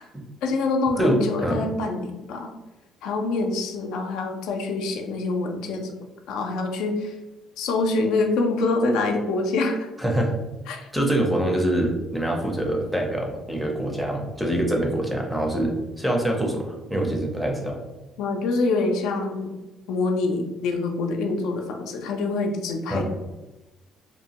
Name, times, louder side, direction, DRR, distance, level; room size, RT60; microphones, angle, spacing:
voice 1, 0.4-2.5 3.0-5.9 6.3-7.1 7.6-9.9 10.7-10.9 18.2-19.6 19.9-23.0, left 3 dB, 85° left, 3 dB, 0.4 m, -25 dB
voice 2, 1.0-1.6 10.0-10.4 10.9-17.8 22.9-23.0, right 1 dB, 5° right, 1 dB, 0.5 m, -25 dB
2.8 x 2.2 x 2.8 m, 1.1 s
cardioid pair, 135°, 0 cm